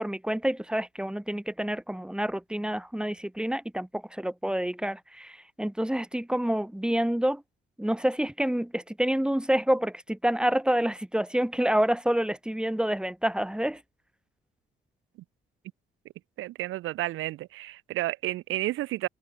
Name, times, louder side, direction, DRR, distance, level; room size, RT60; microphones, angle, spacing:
voice 1, 0.0-7.4 7.8-13.8, right 1 dB, 5° right, 5.4 m, -28 dB
voice 2, 16.4-19.1, right 16 dB, 90° right, 2.2 m, -31 dB
cardioid pair, 90°, 20 cm